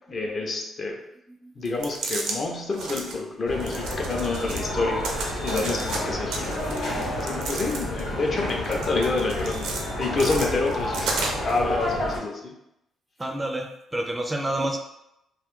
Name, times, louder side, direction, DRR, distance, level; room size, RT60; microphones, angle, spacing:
voice 1, 0.1-1.0 1.6-6.6 7.2-12.6, left 3 dB, 45° left, 1 dB, 0.6 m, -28 dB
voice 2, 1.3-1.9 9.1-9.2 11.0-11.1 13.2-14.8, right 1 dB, 20° right, 3 dB, 0.4 m, -31 dB
sound 1, 1.7-2.4 2.7-3.2 3.6-4.7 5.0-6.0 6.3-8.1 8.5-9.8 10.2-11.6, right 4 dB, 85° right, 0.5 m, -33 dB
sound 2, 3.5-12.2, left 1 dB, 90° left, 1.0 m, -30 dB
2.5 x 2.2 x 3.6 m, 0.84 s
cardioid pair, 90°, 0 cm